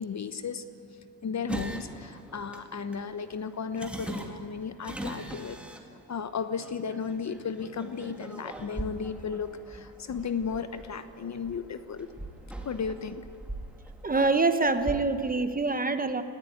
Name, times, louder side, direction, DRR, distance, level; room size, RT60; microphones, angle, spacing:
voice 1, 0.0-5.6 6.1-12.1 12.6-13.3, left 6 dB, 35° left, 11 dB, 1.0 m, -35 dB
sound 1, 1.5-15.0, right 1 dB, ahead, 2.3 m, -42 dB
voice 2, 14.0-16.2, right 3 dB, 20° right, 9 dB, 1.2 m, -25 dB
20.0 x 16.0 x 9.3 m, 2.4 s
cardioid pair, 105°, 47 cm